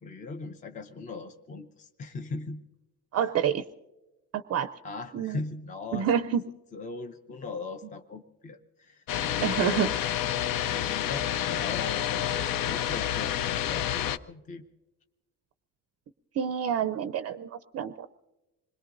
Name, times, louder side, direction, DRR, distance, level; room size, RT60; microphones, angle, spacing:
voice 1, 0.0-2.6 4.8-6.4 6.7-9.9 10.7-14.6, left 4 dB, 20° left, 7 dB, 0.5 m, -39 dB
voice 2, 3.1-3.6 4.3-4.7 5.1-5.4 5.9-6.5 9.4-9.9 16.4-17.9, right 8 dB, 45° right, 10 dB, 0.5 m, -28 dB
sound 1, 9.1-14.2, left 11 dB, 65° left, 0.6 m, -29 dB
26.5 x 21.5 x 2.5 m, 1.1 s
cardioid pair, 175°, 36 cm